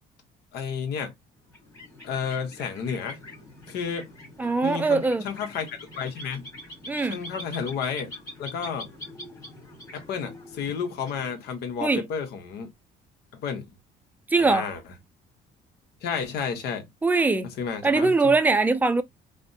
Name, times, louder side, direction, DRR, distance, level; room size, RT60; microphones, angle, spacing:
voice 1, 0.5-1.1 2.0-3.2 3.7-4.1 4.6-6.4 7.0-8.1 8.4-8.9 9.9-12.7 13.3-13.7 14.4-14.8 16.0-16.8 17.6-18.3, left 6 dB, 75° left, 1.0 m, -31 dB
sound 1, 1.4-11.8, left 1 dB, 20° left, 1.4 m, -44 dB
voice 2, 4.4-5.3 6.9-7.2 11.8-12.1 14.3-14.7 17.0-17.5 17.8-19.0, right 3 dB, 10° right, 0.4 m, -22 dB
3.3 x 2.1 x 2.6 m
cardioid pair, 110°, 17 cm